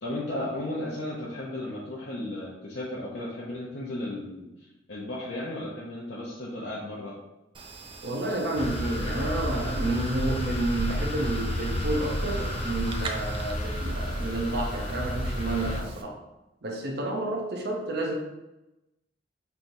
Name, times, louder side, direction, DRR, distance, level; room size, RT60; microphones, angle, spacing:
voice 1, 0.0-4.5 4.9-7.1, left 1 dB, 70° left, -6 dB, 0.8 m, -34 dB
sound 1, 7.5-16.0, right 3 dB, 30° right, 0.4 m, -44 dB
voice 2, 8.0-16.2 16.6-18.2, right 2 dB, 60° right, 0 dB, 0.7 m, -30 dB
sound 2, 8.6-15.8, equal, 35° left, 0.6 m, -31 dB
5.5 x 3.1 x 2.7 m, 0.96 s
head